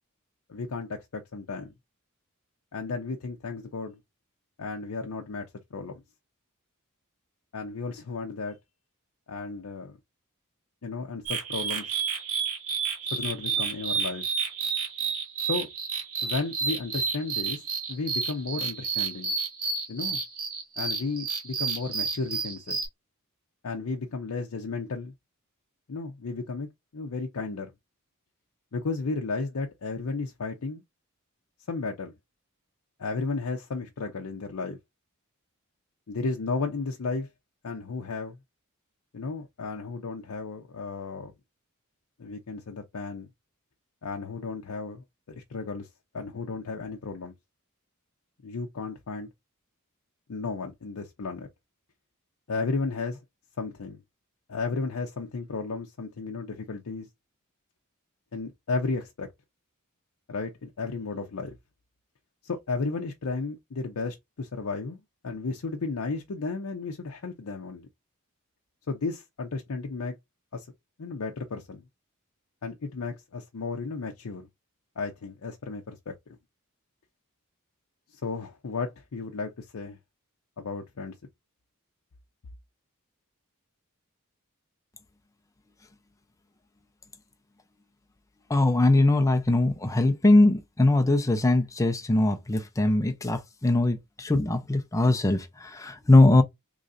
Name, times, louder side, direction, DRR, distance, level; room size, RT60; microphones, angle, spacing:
voice 1, 0.5-1.7 2.7-4.0 4.6-5.9 7.5-8.6 9.3-10.0 10.8-12.0 13.1-14.3 15.4-15.7 16.2-17.6 17.9-19.3 19.9-20.2 20.8-22.8 23.6-25.1 25.9-27.7 28.7-30.8 31.7-32.1 33.0-34.8 36.1-37.3 37.6-38.4 39.1-41.3 42.2-43.3 44.0-45.9 46.1-47.3 48.4-49.3 50.3-51.5 52.5-53.2 53.6-54.0 54.5-57.1 58.3-59.3 60.3-61.6 62.4-67.9 68.9-70.1 70.5-70.7 71.0-71.8 72.6-74.5 75.0-76.1 78.1-80.0 80.6-81.1, left 4 dB, 70° left, 0.6 m, -33 dB
sound 1, 11.3-22.9, right 5 dB, 85° right, 1.3 m, -30 dB
voice 2, 88.5-96.4, left 2 dB, 15° left, 0.5 m, -21 dB
3.8 x 3.1 x 2.5 m
head